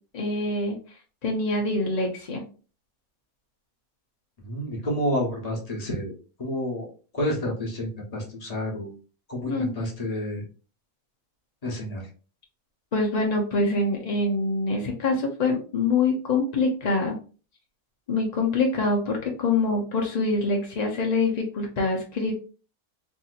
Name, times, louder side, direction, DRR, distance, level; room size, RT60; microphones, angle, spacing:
voice 1, 0.1-0.7 1.2-2.4 9.5-9.7 12.9-17.2 18.1-22.3, left 3 dB, 60° left, 0 dB, 0.4 m, -25 dB
voice 2, 4.4-6.1 6.4-6.9 7.1-8.9 9.3-10.4 11.6-12.1, equal, 30° left, -1 dB, 0.9 m, -29 dB
3.6 x 2.7 x 2.4 m, 0.37 s
omnidirectional pair, 1.5 m